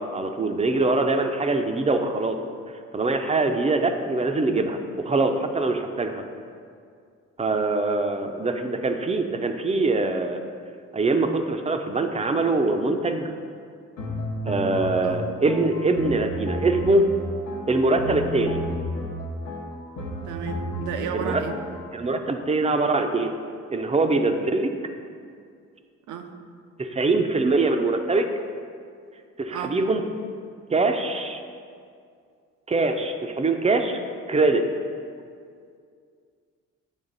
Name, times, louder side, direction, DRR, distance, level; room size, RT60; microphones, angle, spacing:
voice 1, 0.0-2.4 2.9-6.2 7.4-10.4 10.9-13.3 14.4-17.1 17.7-18.6 21.1-21.4 21.9-23.3 23.7-24.7 26.8-28.3 29.4-30.0 30.7-31.4 32.7-34.0 34.3-34.6, right 3 dB, 20° right, 6 dB, 0.5 m, -23 dB
sound 1, 14.0-21.9, equal, 90° left, 1.0 m, -32 dB
voice 2, 20.2-21.6 26.1-26.3 29.5-29.8, right 8 dB, 80° right, 6 dB, 0.6 m, -32 dB
8.0 x 3.4 x 3.9 m, 2.2 s
cardioid pair, 90°, 30 cm